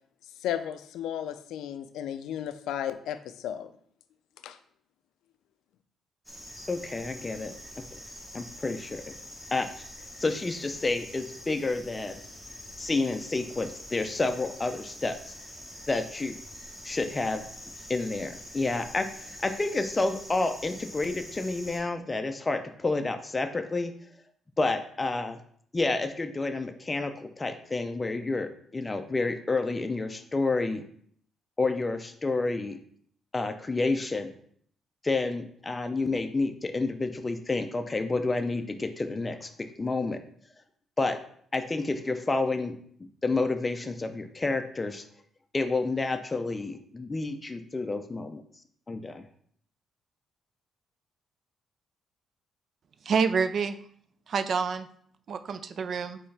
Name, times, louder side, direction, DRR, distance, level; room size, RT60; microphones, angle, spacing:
voice 1, 0.4-3.7 4.4-4.6, left 10 dB, 85° left, 11 dB, 0.3 m, -34 dB
sound 1, 6.3-21.8, equal, ahead, 1.1 m, -45 dB
voice 2, 6.7-7.5 7.9-8.0 8.3-9.0 9.5-9.7 10.2-12.2 12.8-15.3 15.9-16.3 16.8-17.5 17.9-23.9 24.6-25.4 25.7-30.8 31.6-32.8 33.3-34.3 35.0-40.2 41.0-41.2 41.5-42.7 43.2-45.0 45.5-48.4 48.9-49.2, left 3 dB, 25° left, 7 dB, 0.4 m, -29 dB
voice 3, 53.1-53.8 54.3-54.9 55.3-56.2, right 5 dB, 55° right, 11 dB, 0.3 m, -27 dB
4.5 x 3.1 x 3.3 m, 0.62 s
cardioid pair, 90°, 0 cm